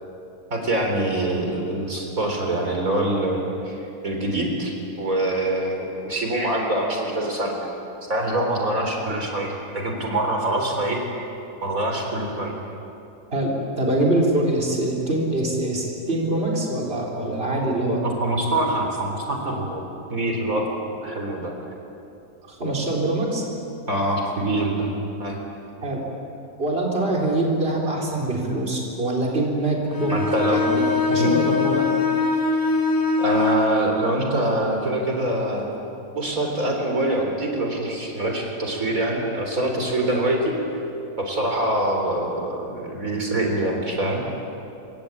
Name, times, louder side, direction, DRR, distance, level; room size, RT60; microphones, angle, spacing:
voice 1, 0.5-4.7 5.0-7.5 8.1-11.0 11.6-12.5 18.0-19.8 20.1-20.6 21.0-21.5 23.9-24.9 25.2-25.4 30.1-30.6 31.2-31.3 33.2-35.7 36.1-40.5 41.2-44.2, right 1 dB, 70° right, 1 dB, 4.3 m, -24 dB
voice 2, 13.3-18.0 22.5-23.4 25.8-26.0 26.6-30.2 30.5-30.8 31.1-31.9, right 1 dB, 40° right, -2 dB, 4.2 m, -24 dB
Bowed string instrument, 29.9-33.7, left 4 dB, 70° left, 3.4 m, -22 dB
27.0 x 24.5 x 8.8 m, 2.8 s
omnidirectional pair, 1.5 m